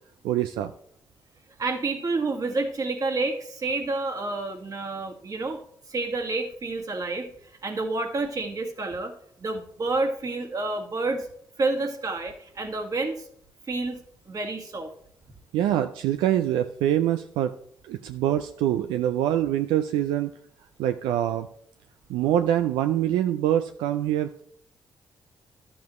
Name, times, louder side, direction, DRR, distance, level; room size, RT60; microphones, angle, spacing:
voice 1, 0.2-0.7 15.5-17.5 17.9-20.3 20.8-21.5 22.1-24.4, right 11 dB, 85° right, 8 dB, 0.4 m, -24 dB
voice 2, 1.6-5.6 5.9-9.1 9.4-11.3 11.6-13.3 13.7-14.9, right 3 dB, 45° right, 4 dB, 1.8 m, -29 dB
12.0 x 7.1 x 3.1 m, 0.65 s
supercardioid pair, 50°, 8 cm